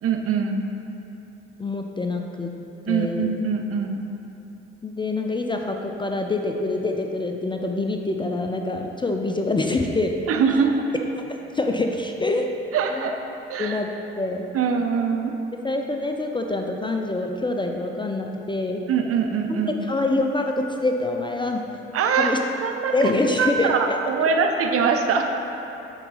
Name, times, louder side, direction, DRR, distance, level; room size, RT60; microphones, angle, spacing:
voice 1, 0.0-0.6 2.9-4.1 10.3-10.9 12.7-13.1 13.5-13.8 14.5-15.3 18.9-19.8 21.9-22.3 22.6-23.1 23.4-25.2, right 6 dB, 45° right, 4 dB, 0.7 m, -23 dB
voice 2, 1.6-2.5 2.9-3.3 4.8-10.1 11.5-12.5 12.9-13.1 13.6-13.9 14.1-14.5 15.6-18.8 19.5-21.6 22.2-22.4 22.9-24.0, left 2 dB, 15° left, 3 dB, 0.5 m, -25 dB
9.8 x 4.0 x 4.1 m, 2.9 s
figure-of-eight pair, 50°, 32 cm